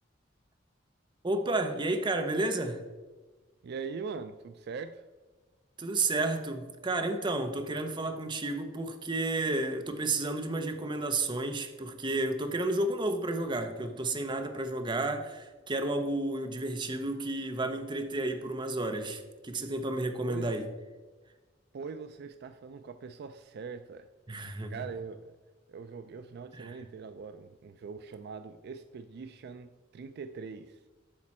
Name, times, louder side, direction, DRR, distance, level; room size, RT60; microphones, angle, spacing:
voice 1, 1.2-2.8 5.8-20.7 24.3-24.8 26.5-26.8, right 2 dB, 25° right, 0.7 m, -31 dB
voice 2, 3.6-5.0 20.2-20.5 21.7-24.1 24.7-25.4 25.7-30.8, right 5 dB, 55° right, 0.4 m, -42 dB
8.7 x 6.0 x 4.2 m
head